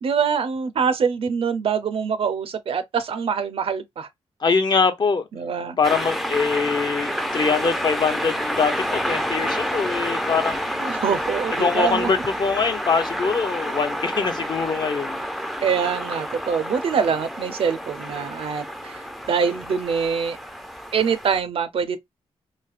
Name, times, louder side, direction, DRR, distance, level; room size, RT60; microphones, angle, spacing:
voice 1, 0.0-4.1 5.3-5.8 10.8-12.1 15.6-20.4 20.9-22.0, right 6 dB, 60° right, 0.5 m, -24 dB
voice 2, 4.4-5.3 5.8-10.6 11.6-15.2, left 5 dB, 45° left, 0.6 m, -23 dB
sound 1, 5.8-21.4, equal, ahead, 0.4 m, -29 dB
3.2 x 2.7 x 2.4 m
wide cardioid pair, 110°, 11 cm